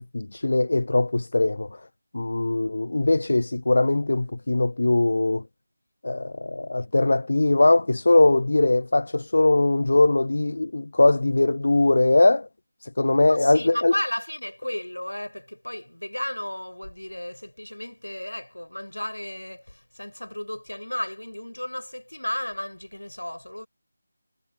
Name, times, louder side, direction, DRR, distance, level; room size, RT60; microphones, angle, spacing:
voice 1, 0.0-1.8 2.1-5.4 6.0-12.5 12.8-13.9, left 2 dB, 60° left, 0.4 m, -21 dB
voice 2, 13.4-23.7, left 1 dB, 85° left, 6.5 m, -34 dB
figure-of-eight pair, 165°, 0 cm